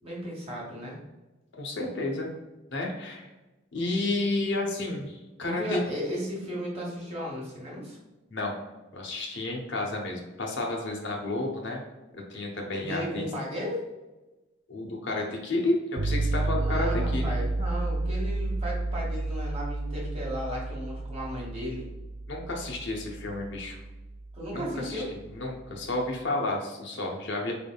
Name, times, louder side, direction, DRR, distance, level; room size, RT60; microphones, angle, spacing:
voice 1, 0.0-1.0 5.4-8.0 12.7-13.8 16.4-21.9 24.3-25.1, equal, 30° right, -3 dB, 1.3 m, -35 dB
voice 2, 1.6-2.3 2.7-3.3 3.7-5.8 8.3-8.6 8.9-11.8 12.1-13.3 14.7-17.3 22.3-23.8 24.5-25.0 25.3-27.5, left 2 dB, 60° left, 0 dB, 0.9 m, -31 dB
sound 1, 16.0-25.8, right 2 dB, 45° right, 0.4 m, -31 dB
4.8 x 3.5 x 2.3 m, 1.1 s
head